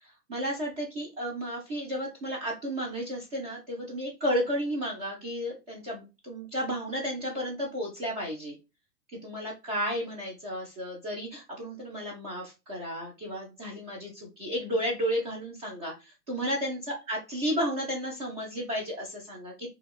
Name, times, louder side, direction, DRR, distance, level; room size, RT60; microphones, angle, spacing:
voice 1, 0.0-8.5 9.2-16.8 17.1-19.7, equal, 25° right, -4 dB, 0.6 m, -33 dB
2.4 x 2.4 x 3.4 m, 0.27 s
hypercardioid pair, 145°, 49 cm